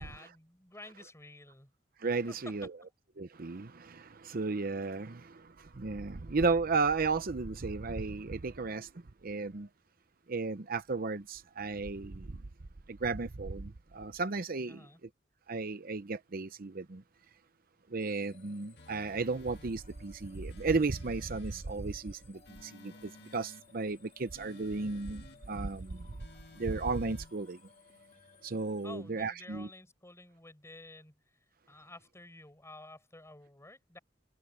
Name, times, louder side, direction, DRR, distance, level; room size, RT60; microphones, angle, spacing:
voice 1, 0.0-1.7 2.3-2.5 2.8-2.9 14.7-15.0 28.8-31.2 31.7-34.0, left 2 dB, 15° left, 5.2 m, -51 dB
voice 2, 2.0-2.7 3.2-5.4 5.8-8.9 9.2-9.7 10.3-12.3 12.9-14.8 15.5-17.0 17.9-26.1 26.6-27.6 28.4-29.7, right 4 dB, 50° right, 0.7 m, -34 dB
sound 1, 18.0-28.9, left 5 dB, 40° left, 3.3 m, -61 dB
sound 2, 18.8-19.8 20.5-21.7 22.4-23.7 24.3-25.4 26.2-27.3, left 2 dB, 65° left, 2.0 m, -55 dB
head